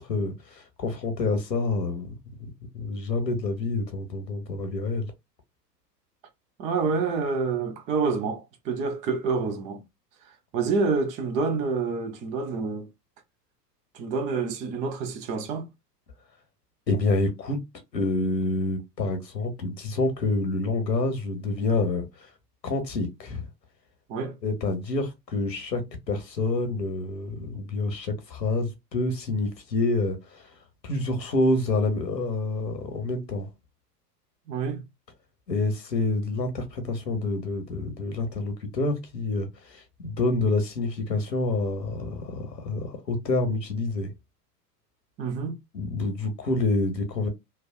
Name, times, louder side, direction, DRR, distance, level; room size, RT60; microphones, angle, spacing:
voice 1, 0.0-2.2 2.7-5.1 16.9-17.6 17.9-22.3 22.6-23.5 24.4-25.8 26.1-30.5 30.8-33.5 35.5-44.1 45.7-47.3, left 2 dB, 85° left, 1.1 m, -27 dB
voice 2, 6.6-9.8 10.5-12.9 13.9-15.7 24.1-24.3 34.5-34.8 45.2-45.6, right 4 dB, 15° right, 0.4 m, -27 dB
3.3 x 2.2 x 2.3 m
figure-of-eight pair, 90°, 49 cm